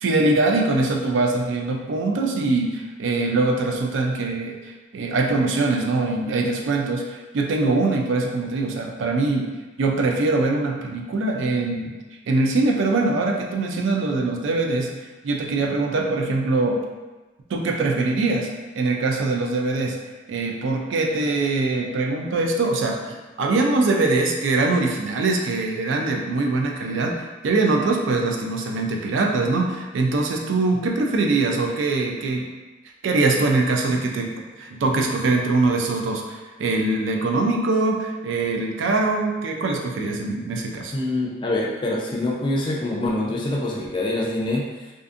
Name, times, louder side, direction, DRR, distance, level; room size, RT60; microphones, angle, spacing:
voice 1, 0.0-9.5 9.8-11.9 12.3-14.9 15.2-16.8 17.5-18.5 18.8-20.0 20.3-32.5 33.0-34.3 34.6-40.9, right 3 dB, 75° right, 1 dB, 0.4 m, -22 dB
voice 2, 40.9-44.9, left 1 dB, 25° left, -2 dB, 0.3 m, -25 dB
2.5 x 2.5 x 2.4 m, 1.2 s
head